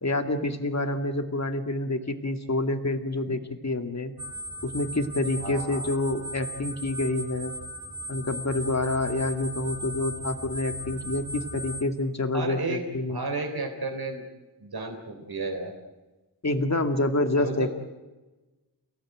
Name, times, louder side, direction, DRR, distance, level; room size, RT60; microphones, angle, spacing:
voice 1, 0.0-4.1 4.6-7.5 8.1-13.2 16.4-17.7, left 2 dB, 40° left, 7 dB, 2.3 m, -27 dB
sound 1, 4.2-11.8, right 1 dB, 10° right, 2.8 m, -37 dB
voice 2, 5.4-6.0 12.3-12.8 13.1-14.2 14.6-15.7 17.4-17.7, right 3 dB, 60° right, 3 dB, 3.8 m, -32 dB
29.5 x 18.0 x 9.3 m, 1.1 s
wide cardioid pair, 90°, 41 cm